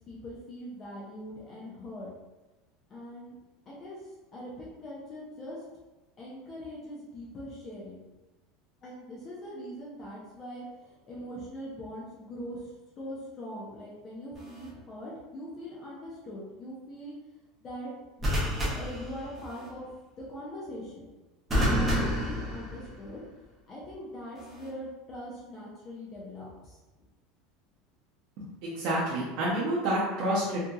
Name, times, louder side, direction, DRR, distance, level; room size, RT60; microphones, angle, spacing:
voice 1, 0.1-2.1 2.9-3.4 3.7-4.0 4.3-5.6 6.2-8.0 8.8-12.7 13.0-17.1 17.6-17.9 18.2-19.9 20.3-21.1 21.5-23.2 23.7-26.8, equal, 25° left, -5 dB, 0.5 m, -42 dB
sound 1, 14.3-14.7 18.2-19.7 21.5-23.2 24.4-24.7, equal, 10° right, 0.8 m, -29 dB
voice 2, 28.6-30.6, right 1 dB, 50° right, -8 dB, 0.6 m, -28 dB
2.7 x 2.7 x 2.4 m, 1.1 s
cardioid pair, 170°, 0 cm